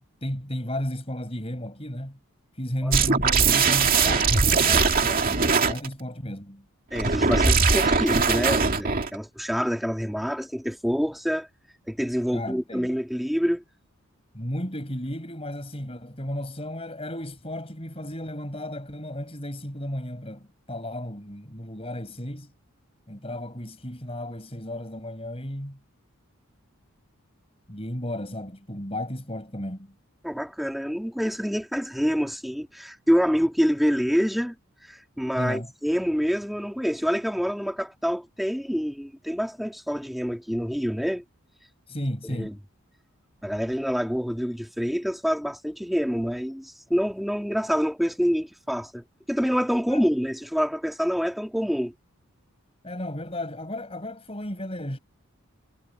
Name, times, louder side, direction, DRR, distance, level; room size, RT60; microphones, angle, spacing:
voice 1, 0.2-2.2 2.5-6.7 12.3-12.9 14.3-22.5 23.1-25.8 27.7-29.9 35.4-35.7 41.9-42.6 49.9-50.0 52.8-55.0, left 1 dB, 25° left, 5.6 m, -34 dB
sound 1, 2.9-5.9 6.9-9.2, right 5 dB, 40° right, 2.5 m, -21 dB
voice 2, 6.9-11.5 11.9-13.6 30.2-34.6 34.9-41.2 42.2-42.5 43.4-51.9, equal, ahead, 2.7 m, -26 dB
head